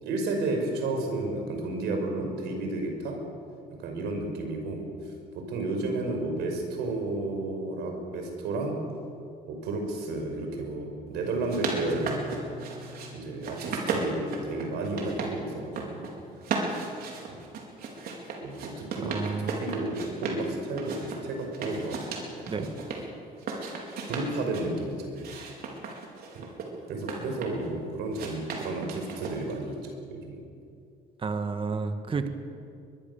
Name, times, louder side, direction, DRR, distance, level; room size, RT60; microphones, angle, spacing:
voice 1, 0.0-3.2 3.8-4.9 5.3-8.9 9.5-12.4 13.1-16.1 17.3-17.4 18.4-22.0 22.4-22.8 24.0-25.3 26.3-26.4 26.9-30.4 32.1-32.2, right 2 dB, 80° right, 3 dB, 5.8 m, -32 dB
sound 1, 11.3-13.1 13.4-15.3 15.6-16.1 16.4-20.4 20.8-23.0 23.4-24.7 25.2-27.7 28.1-29.6, right 4 dB, 65° right, 4.7 m, -35 dB
sound 2, 11.7-20.4, equal, ahead, 6.0 m, -49 dB
voice 2, 19.0-19.6 22.5-22.6 31.2-32.3, right 4 dB, 30° right, 8 dB, 1.6 m, -30 dB
23.0 x 21.5 x 7.1 m, 2.4 s
cardioid pair, 110°, 17 cm